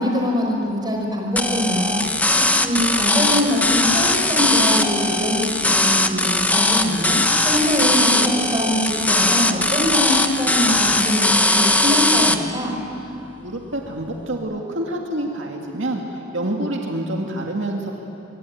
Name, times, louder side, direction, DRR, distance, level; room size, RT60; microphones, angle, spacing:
voice 1, 0.0-2.0 2.5-7.2 7.4-12.7, left 1 dB, 20° right, 0 dB, 5.5 m, -23 dB
sound 1, 1.4-12.4, left 2 dB, 10° left, 1.2 m, -19 dB
voice 2, 13.4-17.9, right 1 dB, 70° right, 1 dB, 2.2 m, -27 dB
25.5 x 24.0 x 9.3 m, 3.0 s
head